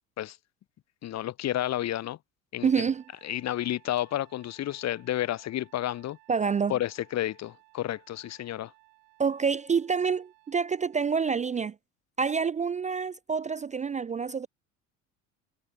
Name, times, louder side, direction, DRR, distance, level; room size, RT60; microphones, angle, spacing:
voice 1, 1.0-2.2 2.5-2.7 3.2-6.2 6.7-8.7, left 13 dB, 45° left, 0.9 m, -31 dB
voice 2, 2.6-3.0 6.3-6.8 9.2-11.7 12.2-14.5, right 6 dB, 20° right, 0.4 m, -27 dB
Trumpet, 2.6-11.1, right 36 dB, 70° right, 7.7 m, -61 dB
hypercardioid pair, 70°, 39 cm